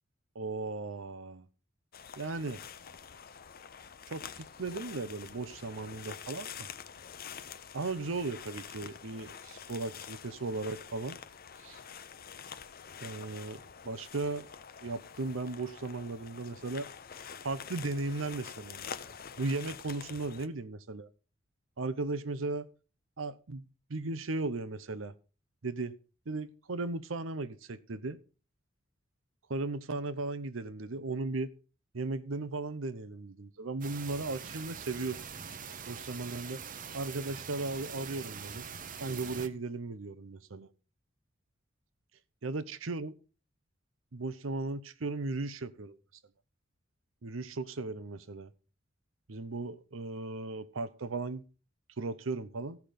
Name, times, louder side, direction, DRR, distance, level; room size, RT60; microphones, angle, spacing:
voice 1, 0.3-1.4 2.2-2.6 4.1-6.7 7.7-11.2 11.6-11.8 13.0-14.5 14.8-16.9 17.4-18.8 19.4-21.1 21.8-22.7 23.2-25.1 25.6-25.9 26.3-28.2 29.5-31.5 31.9-35.2 35.9-36.6 36.9-38.7 39.0-40.7 42.4-43.1 44.1-46.0 47.2-48.5 49.3-51.4 52.0-52.8, right 3 dB, 90° right, 0.8 m, -36 dB
sound 1, 1.9-20.5, left 7 dB, 50° left, 0.7 m, -47 dB
sound 2, 33.8-39.5, right 6 dB, 45° right, 0.8 m, -43 dB
14.5 x 5.9 x 5.0 m
head